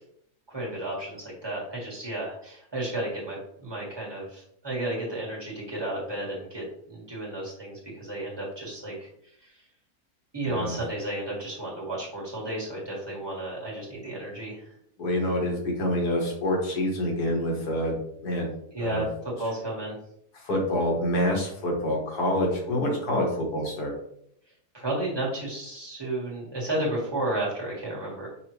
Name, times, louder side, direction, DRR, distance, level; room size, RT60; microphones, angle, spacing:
voice 1, 0.5-9.1 10.3-14.7 18.7-19.9 24.7-28.3, right 1 dB, 15° right, -5 dB, 1.5 m, -32 dB
voice 2, 10.4-10.8 15.0-18.0 18.2-18.5 18.8-19.1 20.3-23.9, left 1 dB, 85° left, -1 dB, 1.9 m, -27 dB
5.9 x 2.7 x 3.1 m, 0.69 s
omnidirectional pair, 1.6 m